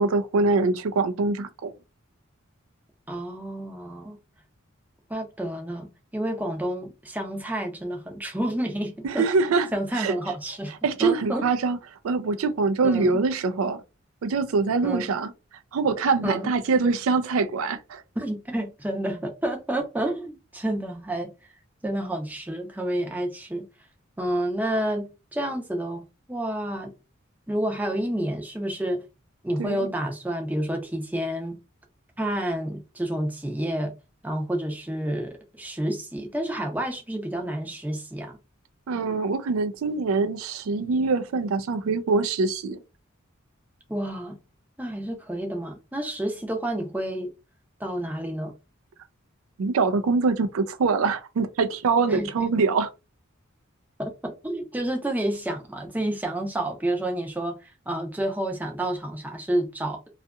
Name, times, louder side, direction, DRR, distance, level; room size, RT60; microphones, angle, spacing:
voice 1, 0.0-1.8 9.0-9.7 9.9-10.1 10.8-11.8 12.0-13.8 14.2-15.3 15.7-18.0 29.6-29.9 38.9-42.8 49.6-52.9, right 4 dB, 85° right, 0.4 m, -24 dB
voice 2, 3.1-4.2 5.1-9.2 9.7-10.7 11.0-11.4 12.8-13.2 14.8-15.1 16.2-16.5 18.2-21.3 21.8-23.7 24.2-26.9 27.5-29.0 29.4-31.6 32.2-33.9 34.2-38.4 43.9-44.4 44.8-47.3 47.8-48.5 52.1-52.5 54.0-60.0, right 1 dB, 10° right, 0.5 m, -29 dB
2.7 x 2.4 x 2.2 m
head